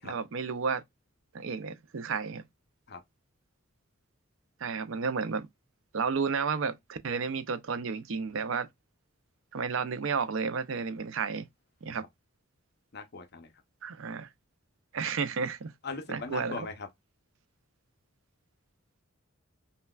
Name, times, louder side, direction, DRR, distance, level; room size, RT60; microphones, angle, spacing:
voice 1, 0.0-0.8 1.3-2.4 4.6-5.5 5.9-8.7 9.5-11.5 11.8-12.0 13.8-14.3 14.9-15.7 16.1-16.7, right 5 dB, 70° right, 0.5 m, -32 dB
voice 2, 12.9-13.5 15.8-16.9, left 4 dB, 50° left, 0.7 m, -39 dB
5.5 x 2.3 x 2.3 m
head